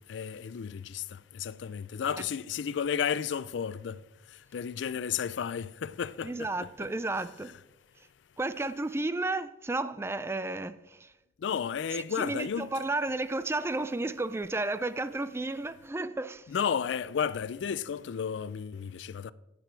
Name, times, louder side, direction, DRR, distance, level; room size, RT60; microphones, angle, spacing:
voice 1, 0.1-1.0 1.4-4.0 4.5-6.5 11.4-12.8 16.5-19.3, left 7 dB, 75° left, 0.4 m, -32 dB
voice 2, 6.2-7.5 8.4-11.1 12.2-16.5, right 2 dB, 15° right, 0.3 m, -32 dB
10.5 x 8.7 x 4.6 m
head